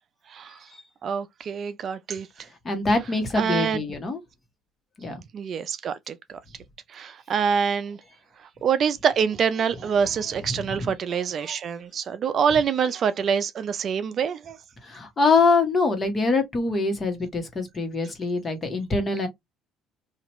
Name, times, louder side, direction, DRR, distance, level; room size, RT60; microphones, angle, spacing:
voice 1, 0.3-0.7 1.0-2.5 3.4-3.8 5.3-6.4 6.9-8.0 8.6-14.6, right 7 dB, 50° right, 0.4 m, -25 dB
voice 2, 2.6-4.2 5.0-5.2 10.5-10.9 14.8-19.3, left 3 dB, 35° left, 1.3 m, -24 dB
2.8 x 2.4 x 2.9 m
hypercardioid pair, 65°, 0 cm